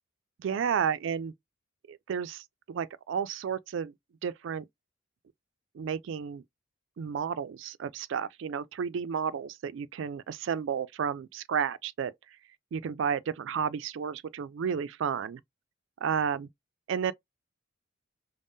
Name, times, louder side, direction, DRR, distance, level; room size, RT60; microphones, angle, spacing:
voice 1, 0.4-1.3 1.9-3.9 4.2-4.6 5.8-6.4 7.0-12.1 12.7-15.4 16.0-16.5 16.9-17.1, right 7 dB, 65° right, 0.3 m, -32 dB
3.5 x 2.0 x 2.6 m
head